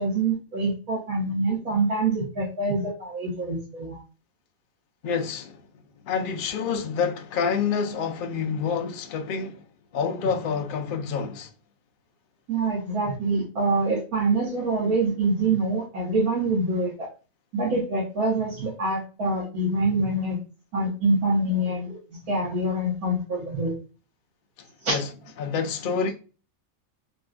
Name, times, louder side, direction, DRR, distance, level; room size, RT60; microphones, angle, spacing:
voice 1, 0.0-4.0 12.5-17.1 17.5-20.4 20.7-22.0 22.3-23.7 24.8-25.0, right 2 dB, 85° right, 1.5 m, -25 dB
voice 2, 5.0-5.6 6.1-9.6 9.9-11.5 24.9-25.1 25.4-26.1, left 6 dB, 60° left, 0.5 m, -27 dB
3.7 x 2.5 x 2.3 m
omnidirectional pair, 1.5 m